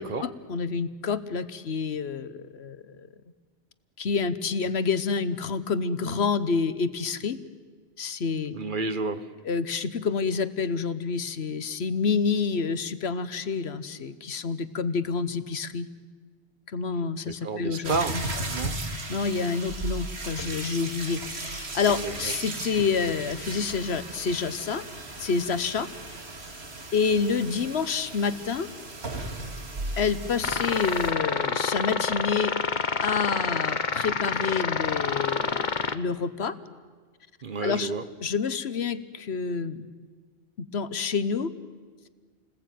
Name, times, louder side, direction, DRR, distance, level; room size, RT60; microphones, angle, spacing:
voice 1, 0.2-3.1 4.0-7.4 8.0-8.5 9.5-15.9 16.7-18.2 19.1-24.8 25.2-25.9 26.9-28.7 30.0-32.5 33.0-36.6 37.6-37.9 38.2-39.9 40.6-41.5, left 5 dB, 70° left, 1.3 m, -28 dB
voice 2, 8.5-9.3 17.2-18.8 21.9-22.3 37.4-38.1, right 4 dB, 50° right, 1.2 m, -31 dB
sound 1, 17.8-31.1, right 2 dB, 70° right, 2.4 m, -36 dB
sound 2, 30.4-35.9, left 5 dB, 45° left, 1.1 m, -28 dB
29.0 x 20.0 x 9.3 m
omnidirectional pair, 1.1 m